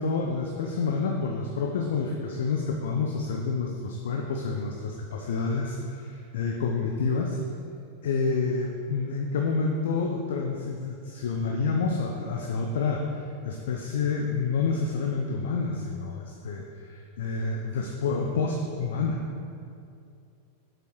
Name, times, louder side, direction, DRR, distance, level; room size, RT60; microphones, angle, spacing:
voice 1, 0.0-7.4 8.0-13.0 13.4-19.2, left 4 dB, 60° left, 1 dB, 0.7 m, -28 dB
8.1 x 6.8 x 4.7 m, 2.4 s
figure-of-eight pair, 90°, 0 cm